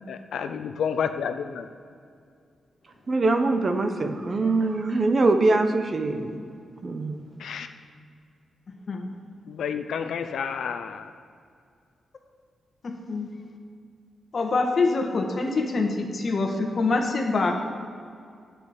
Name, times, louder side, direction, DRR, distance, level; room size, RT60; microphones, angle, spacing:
voice 1, 0.1-1.7 7.4-7.7 9.5-11.1, left 7 dB, 80° left, 8 dB, 0.6 m, -30 dB
voice 2, 3.1-6.4 6.8-7.2, right 3 dB, 40° right, 7 dB, 1.0 m, -23 dB
voice 3, 12.8-13.3 14.3-17.5, left 3 dB, 50° left, 3 dB, 1.5 m, -25 dB
9.9 x 6.1 x 8.0 m, 2.3 s
cardioid pair, 100°, 0 cm